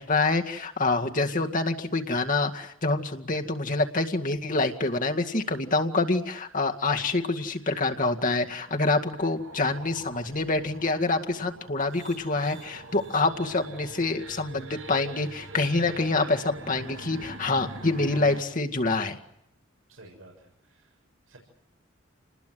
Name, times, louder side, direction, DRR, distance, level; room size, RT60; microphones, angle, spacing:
voice 1, 0.0-19.2, left 3 dB, 40° left, 4 dB, 2.1 m, -26 dB
sound 1, 7.0-18.4, right 2 dB, 65° right, 2.4 m, -44 dB
voice 2, 19.9-21.0 21.3-21.4, right 2 dB, 85° right, 0 dB, 6.9 m, -52 dB
29.0 x 20.5 x 8.0 m, 0.79 s
head